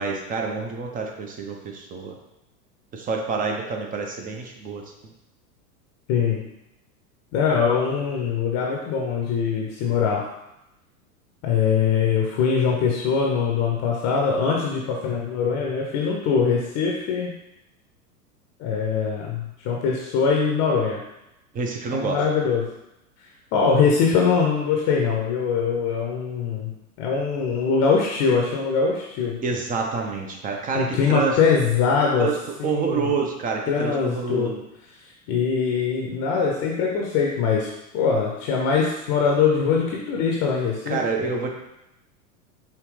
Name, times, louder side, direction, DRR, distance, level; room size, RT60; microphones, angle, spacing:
voice 1, 0.0-2.1 2.9-4.8 21.5-22.2 29.4-31.4 32.2-32.3 32.6-34.6 40.9-41.5, right 5 dB, 20° right, 2 dB, 0.5 m, -27 dB
voice 2, 6.1-6.4 7.3-10.3 11.4-17.3 18.6-21.0 21.9-22.7 23.5-26.7 27.0-29.4 30.7-32.3 32.6-33.1 33.7-34.5 35.0-41.3, left 6 dB, 35° left, -1 dB, 0.7 m, -22 dB
4.9 x 2.9 x 3.2 m, 0.89 s
hypercardioid pair, 95°, 47 cm